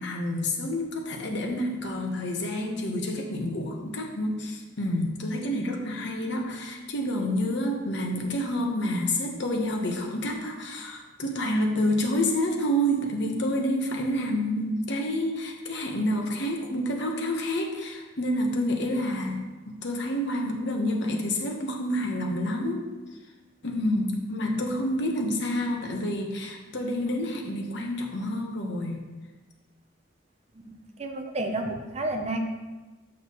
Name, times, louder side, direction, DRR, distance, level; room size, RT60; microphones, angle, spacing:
voice 1, 0.0-22.9 23.6-29.0, equal, 60° left, 1 dB, 1.0 m, -28 dB
voice 2, 31.0-32.4, right 2 dB, 35° right, 4 dB, 0.6 m, -30 dB
7.3 x 6.5 x 3.1 m, 1.2 s
head